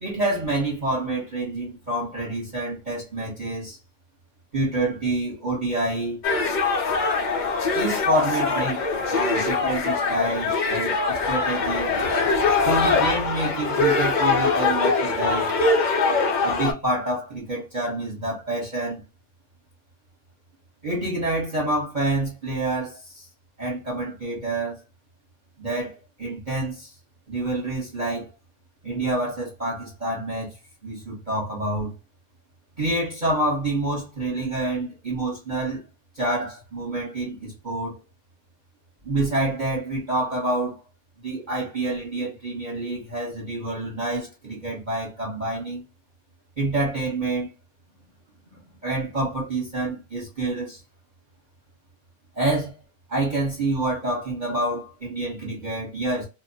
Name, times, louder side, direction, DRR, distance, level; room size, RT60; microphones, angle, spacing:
voice 1, 0.0-3.8 4.5-6.2 7.7-11.9 12.6-15.5 16.4-19.0 20.8-23.3 23.6-24.8 25.6-26.9 27.3-28.3 28.8-30.5 30.8-31.9 32.8-35.8 36.1-38.0 39.0-40.8 41.2-45.8 46.6-47.5 48.5-50.8 52.4-52.7 53.1-56.2, right 2 dB, 35° right, 1.0 m, -27 dB
sound 1, 6.2-16.7, left 4 dB, 70° left, 0.4 m, -22 dB
2.4 x 2.1 x 2.6 m
omnidirectional pair, 1.5 m